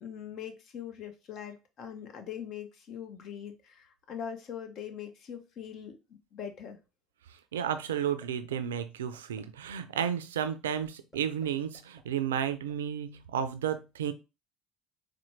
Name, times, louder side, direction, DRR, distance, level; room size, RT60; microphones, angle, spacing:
voice 1, 0.0-6.8, left 8 dB, 55° left, 7 dB, 0.8 m, -42 dB
voice 2, 7.5-14.1, right 9 dB, 85° right, 11 dB, 0.4 m, -32 dB
sound 1, 8.0-8.3 8.5-8.8 9.1-9.4 9.8-10.0 10.4-10.5 10.8-11.5 11.7-12.7, left 2 dB, 25° left, 1.8 m, -55 dB
4.3 x 2.1 x 3.1 m, 0.28 s
hypercardioid pair, 65°, 0 cm